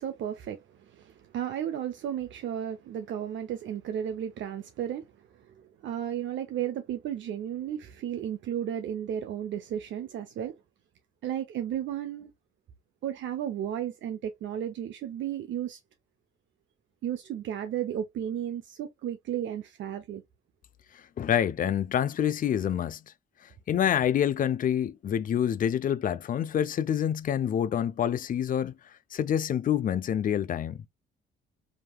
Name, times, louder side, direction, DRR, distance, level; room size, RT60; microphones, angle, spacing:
voice 1, 0.0-5.1 5.4-10.6 11.2-12.3 13.0-15.8 17.0-20.2, right 10 dB, 70° right, 0.7 m, -34 dB
voice 2, 21.2-23.0 23.7-28.7 29.1-30.8, left 9 dB, 45° left, 0.5 m, -27 dB
5.1 x 2.8 x 2.2 m
cardioid pair, 90°, 20 cm